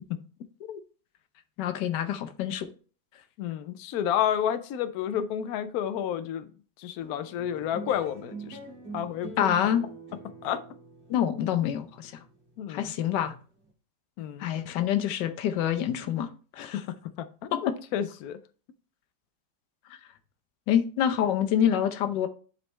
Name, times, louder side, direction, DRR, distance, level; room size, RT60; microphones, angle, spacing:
voice 1, 1.6-2.7 9.4-9.8 11.1-12.1 12.7-13.4 14.4-16.3 16.5-16.8 17.5-17.6 20.7-22.3, left 10 dB, 90° left, 1.4 m, -26 dB
voice 2, 3.4-6.5 6.8-8.6 8.9-9.3 10.4-10.6 12.6-12.9 14.2-14.6 16.7-18.4, left 9 dB, 70° left, 1.0 m, -31 dB
sound 1, 7.0-13.7, right 4 dB, 40° right, 1.9 m, -44 dB
9.7 x 4.4 x 3.2 m
omnidirectional pair, 1.8 m